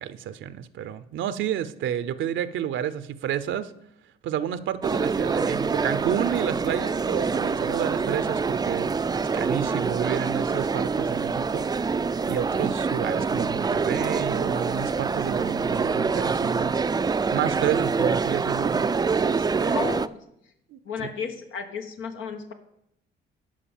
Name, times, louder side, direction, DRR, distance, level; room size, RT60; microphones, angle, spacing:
voice 1, 0.0-3.7 4.2-9.1 9.3-11.7 12.2-18.9 19.2-19.8 20.7-21.1, right 10 dB, 75° right, 13 dB, 0.7 m, -30 dB
sound 1, 4.8-20.1, right 5 dB, 20° right, 0.4 m, -25 dB
voice 2, 19.7-20.2 20.8-22.5, left 6 dB, 85° left, 5 dB, 1.2 m, -33 dB
11.5 x 5.0 x 7.2 m, 0.76 s
cardioid pair, 90°, 20 cm